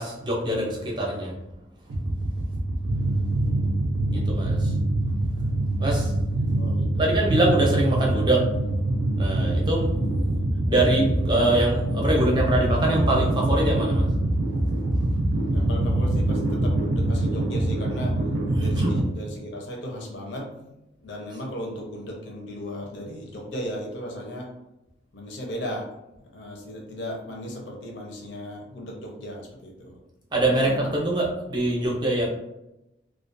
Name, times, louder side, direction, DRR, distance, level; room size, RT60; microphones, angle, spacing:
voice 1, 0.0-1.4 4.1-4.7 5.8-6.1 7.0-8.6 9.2-10.0 10.7-14.1 18.5-18.9 30.3-32.3, right 1 dB, 25° right, -2 dB, 0.5 m, -24 dB
sound 1, 1.9-19.0, right 1 dB, 85° right, 0.4 m, -24 dB
voice 2, 6.5-7.1 15.5-18.2 18.6-20.7 21.0-24.5 25.1-25.9 26.3-30.0 30.4-30.9, equal, 80° left, -1 dB, 0.6 m, -36 dB
2.4 x 2.2 x 2.5 m, 0.91 s
head